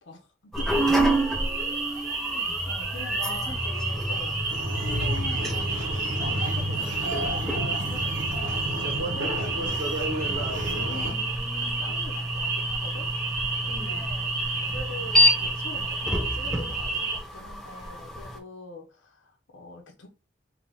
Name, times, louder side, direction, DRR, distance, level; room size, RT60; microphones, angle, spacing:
voice 1, 0.0-0.9 2.1-11.2 11.6-13.1 13.6-14.3 14.7-20.1, left 3 dB, 90° left, 0.7 m, -43 dB
sound 1, 0.5-18.4, equal, 5° left, 0.5 m, -30 dB
sound 2, 0.5-17.2, right 3 dB, 40° right, 1.4 m, -31 dB
voice 2, 0.9-2.6 3.3-4.1 11.0-12.0 13.7-14.1, equal, 20° left, 1.4 m, -40 dB
sound 3, 4.5-11.1, right 1 dB, 90° right, 1.2 m, -31 dB
3.4 x 2.8 x 3.9 m
head